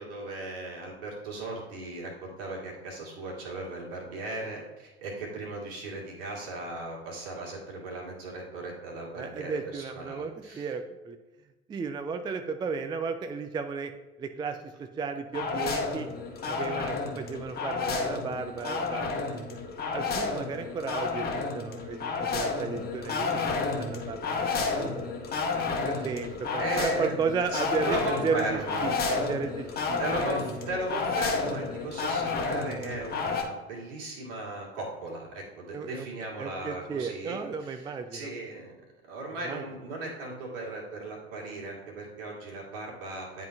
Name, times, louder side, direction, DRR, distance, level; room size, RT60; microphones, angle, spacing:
voice 1, 0.0-10.7 26.0-26.1 26.6-27.2 27.5-28.9 30.0-38.8 39.1-43.5, right 2 dB, 60° right, -3 dB, 2.2 m, -37 dB
voice 2, 9.2-11.2 11.7-13.9 14.2-16.1 16.5-19.5 19.9-25.1 25.8-28.0 28.2-30.0 35.7-36.1 36.4-38.3 39.4-39.6, right 5 dB, 15° right, 7 dB, 0.4 m, -34 dB
sound 1, 15.3-33.4, left 4 dB, 30° left, 1.3 m, -31 dB
10.0 x 3.9 x 2.8 m, 1.1 s
figure-of-eight pair, 65°, 31 cm